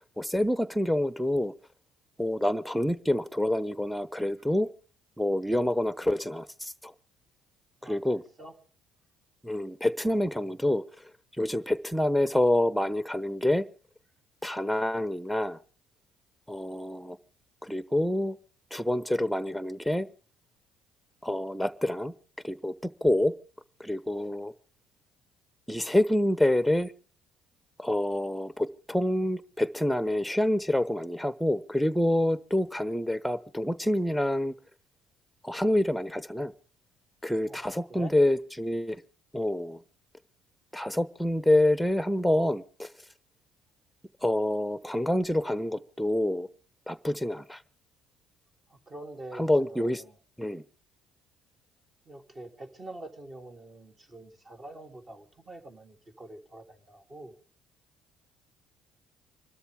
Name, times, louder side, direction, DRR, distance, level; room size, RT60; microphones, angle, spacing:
voice 1, 0.2-1.5 2.2-4.7 5.2-6.9 7.8-8.2 9.4-10.8 11.4-13.7 14.4-15.6 16.5-17.2 17.6-18.4 18.7-20.1 21.2-22.1 22.4-23.4 23.8-24.5 25.7-26.9 27.8-34.5 35.4-36.5 37.2-39.0 39.3-39.8 40.7-42.9 44.2-46.5 46.9-47.6 49.4-50.0 50.4-50.6, left 1 dB, ahead, 16 dB, 1.0 m, -27 dB
voice 2, 7.8-8.6 10.1-10.2 37.5-38.1 48.7-50.2 52.1-57.3, right 1 dB, 35° right, 4 dB, 3.3 m, -46 dB
25.5 x 13.0 x 3.6 m, 0.37 s
hypercardioid pair, 55°, 0 cm